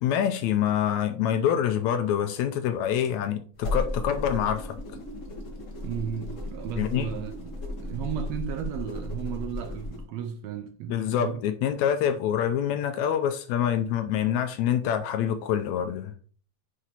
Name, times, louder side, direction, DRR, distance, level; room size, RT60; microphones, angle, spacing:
voice 1, 0.0-4.8 6.8-7.1 10.9-16.1, left 9 dB, 80° left, 1.8 m, -26 dB
sound 1, 3.5-10.0, left 1 dB, 65° left, 0.7 m, -35 dB
voice 2, 5.8-11.4, right 8 dB, 80° right, 1.6 m, -34 dB
9.6 x 5.0 x 2.9 m
omnidirectional pair, 3.5 m